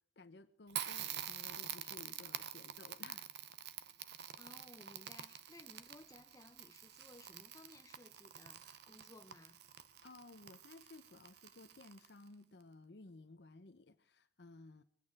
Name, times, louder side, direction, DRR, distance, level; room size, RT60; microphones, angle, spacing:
voice 1, 0.2-3.3 3.8-3.9 10.0-14.8, left 2 dB, 65° left, 0.7 m, -57 dB
Crackle, 0.7-12.3, right 10 dB, 65° right, 0.7 m, -47 dB
voice 2, 4.4-9.6, left 2 dB, 20° left, 0.7 m, -59 dB
22.0 x 8.8 x 4.8 m
head